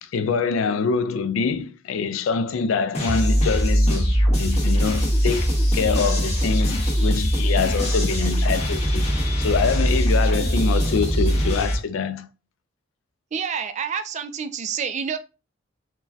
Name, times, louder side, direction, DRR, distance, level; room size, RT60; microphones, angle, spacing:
voice 1, 0.0-5.5 5.7-9.1 9.4-12.3, left 5 dB, 80° left, 0.4 m, -25 dB
sound 1, 2.9-11.8, equal, 35° left, 0.8 m, -21 dB
voice 2, 13.3-15.2, right 7 dB, 35° right, 0.3 m, -28 dB
3.8 x 2.2 x 2.3 m
head